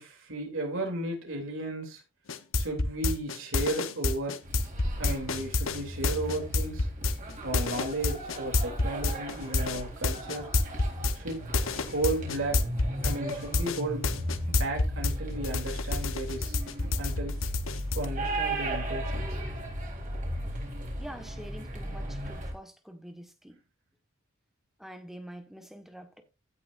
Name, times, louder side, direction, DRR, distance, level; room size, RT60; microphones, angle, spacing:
voice 1, 0.0-2.0 2.5-4.3 5.0-6.9 7.4-10.5 11.1-11.5 11.8-12.6 13.0-16.5 17.0-17.3 17.9-19.4, right 2 dB, 75° right, 3.0 m, -34 dB
sound 1, 2.3-15.2 15.4-18.1, left 3 dB, 80° left, 1.0 m, -28 dB
sound 2, 4.4-22.5, right 1 dB, 40° right, 3.7 m, -36 dB
voice 2, 21.0-23.6 24.8-26.2, equal, ahead, 1.4 m, -46 dB
16.0 x 6.1 x 2.6 m
head